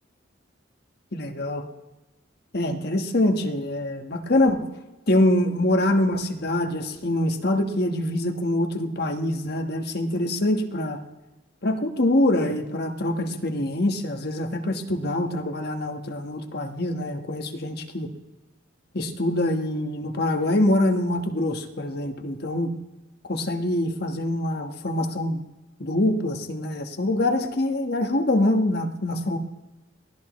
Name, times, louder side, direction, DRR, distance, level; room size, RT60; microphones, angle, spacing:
voice 1, 1.1-1.7 2.5-4.7 5.1-11.0 11.6-18.1 18.9-22.8 23.2-25.4 25.8-29.4, left 1 dB, 55° left, 5 dB, 1.4 m, -24 dB
22.5 x 16.0 x 3.2 m, 1.1 s
head